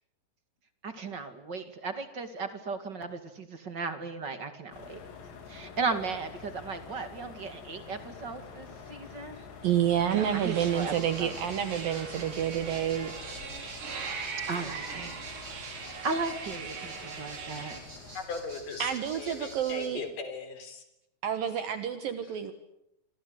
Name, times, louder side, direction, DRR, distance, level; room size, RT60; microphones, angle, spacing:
voice 1, 0.8-5.0 5.5-9.5 10.1-11.3 14.5-15.2 16.0-17.8, right 4 dB, 35° right, 9 dB, 1.9 m, -36 dB
sound 1, 4.7-18.2, left 6 dB, 90° left, 5.7 m, -47 dB
voice 2, 9.6-13.4 18.8-20.1 21.2-22.5, right 10 dB, 65° right, 10 dB, 2.7 m, -29 dB
sound 2, 10.1-17.8, right 5 dB, 80° right, 6.2 m, -40 dB
sound 3, 10.5-19.9, right 1 dB, 20° right, 6.7 m, -49 dB
voice 3, 18.1-20.8, left 4 dB, 50° left, 9 dB, 5.1 m, -39 dB
26.5 x 26.0 x 8.1 m, 0.84 s
omnidirectional pair, 4.9 m